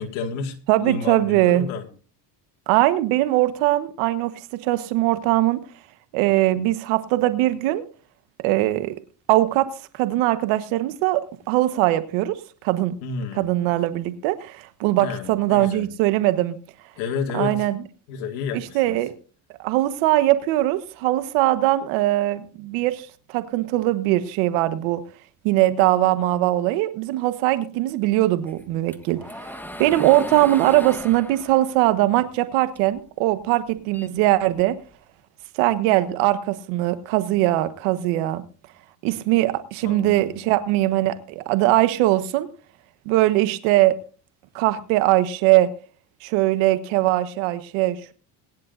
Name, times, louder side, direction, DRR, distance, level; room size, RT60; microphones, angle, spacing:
voice 1, 0.0-1.9 13.0-13.5 15.0-15.9 17.0-17.7 18.1-19.0 39.8-40.5, left 5 dB, 85° left, 2 dB, 2.2 m, -31 dB
voice 2, 0.7-1.7 2.7-4.3 4.6-5.6 6.1-7.8 8.4-8.9 9.3-12.4 12.6-12.9 13.4-16.6 17.3-17.8 18.7-19.1 19.6-25.0 25.4-29.5 29.8-34.7 35.5-38.4 39.0-42.5 43.0-44.0 44.5-45.7 46.2-48.1, right 16 dB, 85° right, 11 dB, 1.4 m, -21 dB
sound 1, 28.5-33.0 33.4-34.9, equal, 5° left, 1.5 m, -37 dB
21.5 x 11.0 x 2.6 m, 0.37 s
supercardioid pair, 90°, 47 cm